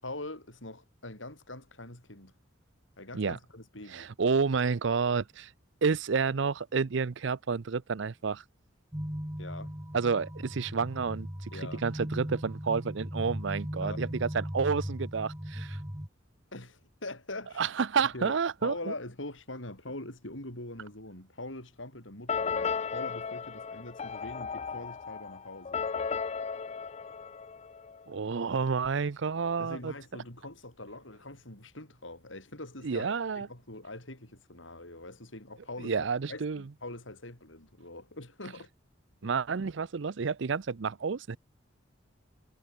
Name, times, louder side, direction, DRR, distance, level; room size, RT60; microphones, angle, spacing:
voice 1, 0.0-2.3 3.0-4.1 9.4-9.7 11.5-11.8 13.8-14.0 16.5-17.7 18.1-25.8 29.6-38.7, left 2 dB, 70° left, 7.8 m, -43 dB
voice 2, 3.9-5.5 5.8-8.4 9.9-11.5 11.8-15.8 17.6-18.9 28.1-29.9 32.8-33.5 35.8-36.6 39.2-41.4, right 5 dB, 65° right, 0.6 m, -30 dB
sound 1, 8.9-16.1, equal, 15° right, 2.5 m, -38 dB
sound 2, 22.3-28.0, left 6 dB, 35° left, 0.5 m, -35 dB
head